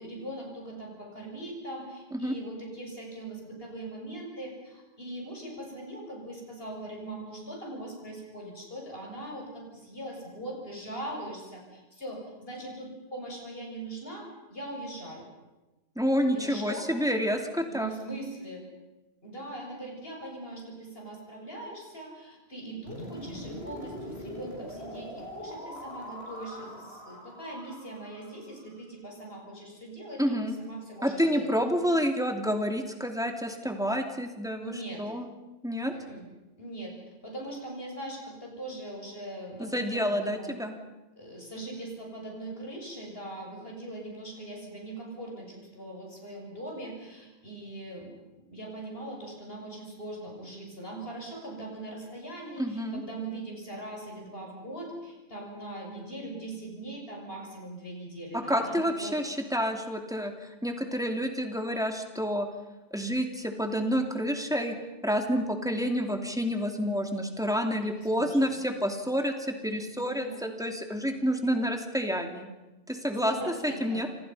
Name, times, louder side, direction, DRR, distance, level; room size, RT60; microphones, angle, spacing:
voice 1, 0.0-15.3 16.2-16.9 17.7-18.6 19.2-31.5 34.6-35.0 35.9-36.3 36.6-36.9 37.2-40.5 41.2-48.1 48.5-59.2 67.7-68.6 70.1-70.5 73.2-74.0, right 1 dB, 70° left, -1 dB, 6.9 m, -41 dB
voice 2, 16.0-17.9 30.2-30.5 31.0-35.3 35.6-35.9 39.6-40.7 52.6-53.0 58.3-62.5 62.9-64.8 65.0-69.3 69.6-72.5 72.9-73.3 73.6-74.1, equal, 5° right, 4 dB, 2.8 m, -29 dB
sound 1, 22.9-28.8, left 1 dB, 85° left, 6.5 m, -42 dB
29.5 x 26.0 x 5.7 m, 1.1 s
omnidirectional pair, 1.0 m